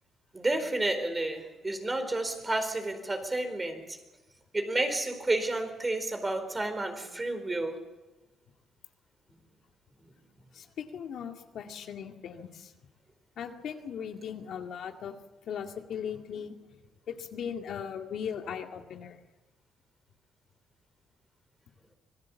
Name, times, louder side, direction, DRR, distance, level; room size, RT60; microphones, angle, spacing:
voice 1, 0.3-4.0 4.5-7.8, right 2 dB, 20° right, 7 dB, 4.3 m, -31 dB
voice 2, 10.5-12.7 13.4-15.2 15.5-16.5 17.1-19.2, left 7 dB, 70° left, 4 dB, 2.1 m, -38 dB
26.0 x 19.5 x 7.2 m, 1.1 s
cardioid pair, 90°, 0 cm